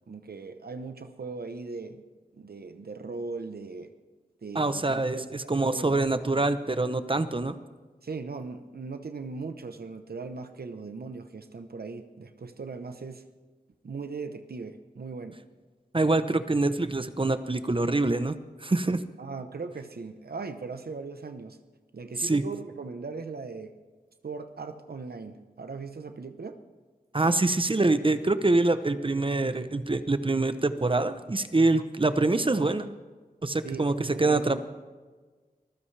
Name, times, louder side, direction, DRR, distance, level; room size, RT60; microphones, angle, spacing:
voice 1, 0.1-2.0 2.3-3.9 4.4-6.4 8.0-13.2 13.8-15.4 19.2-21.6 21.9-23.7 24.2-26.6 32.2-32.8 33.6-34.6, right 4 dB, 85° right, 8 dB, 0.9 m, -39 dB
voice 2, 4.5-7.5 15.9-19.0 22.2-22.4 27.1-32.9 33.4-34.6, right 2 dB, 35° right, 11 dB, 0.8 m, -25 dB
23.5 x 15.5 x 3.4 m, 1.4 s
wide cardioid pair, 60°, 16 cm